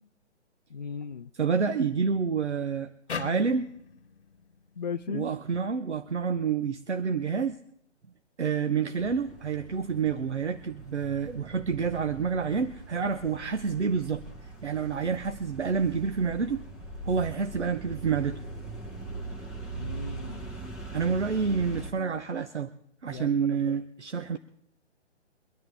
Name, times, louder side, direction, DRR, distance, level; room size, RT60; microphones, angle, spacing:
voice 1, 0.7-1.3 4.8-5.3 19.7-20.5 23.1-23.8, left 6 dB, 40° left, 0.4 m, -37 dB
voice 2, 1.3-3.7 5.1-7.6 8.4-16.6 17.1-18.4 20.9-22.7 23.0-24.4, right 6 dB, 70° right, 1.0 m, -28 dB
sound 1, 3.1-6.3, left 6 dB, 60° left, 1.2 m, -41 dB
sound 2, 9.0-21.9, right 3 dB, ahead, 1.0 m, -41 dB
24.5 x 10.5 x 3.4 m
figure-of-eight pair, 140°, 36 cm